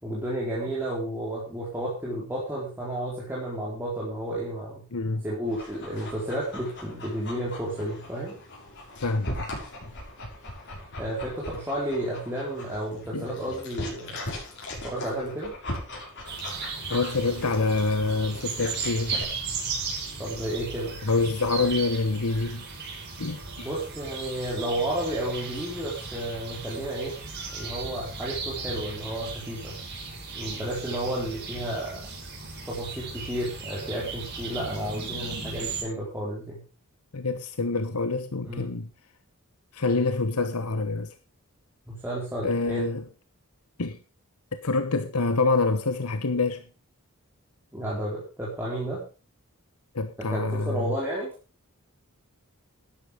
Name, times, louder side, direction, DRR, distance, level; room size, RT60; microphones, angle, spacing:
voice 1, 0.0-4.8 5.2-8.4 11.0-14.2 14.8-15.5 20.2-21.0 23.6-27.2 27.5-29.7 30.3-32.0 32.7-36.6 38.5-38.7 41.9-42.8 47.7-49.0 50.2-51.3, right 1 dB, 10° right, 4.4 m, -32 dB
voice 2, 4.9-5.2 9.0-9.5 13.1-13.3 16.9-19.2 21.0-22.7 23.2-23.7 37.1-38.9 39.7-41.1 42.4-43.0 43.8-44.0 44.5-46.6 49.9-50.9, left 3 dB, 90° left, 1.1 m, -26 dB
Dog, 5.4-19.2, left 1 dB, 55° left, 6.4 m, -39 dB
sound 1, 16.2-35.8, right 4 dB, 50° right, 5.7 m, -36 dB
13.0 x 10.5 x 5.2 m
head